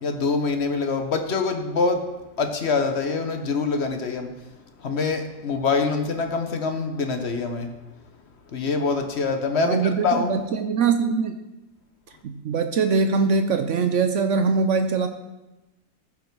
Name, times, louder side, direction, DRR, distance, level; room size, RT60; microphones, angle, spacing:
voice 1, 0.0-2.0 2.4-4.3 4.8-7.7 8.5-10.4, left 4 dB, 50° left, 6 dB, 1.0 m, -25 dB
voice 2, 9.6-11.3 12.2-15.1, right 5 dB, 70° right, 7 dB, 0.7 m, -22 dB
14.5 x 5.7 x 4.6 m, 1.0 s
omnidirectional pair, 1.9 m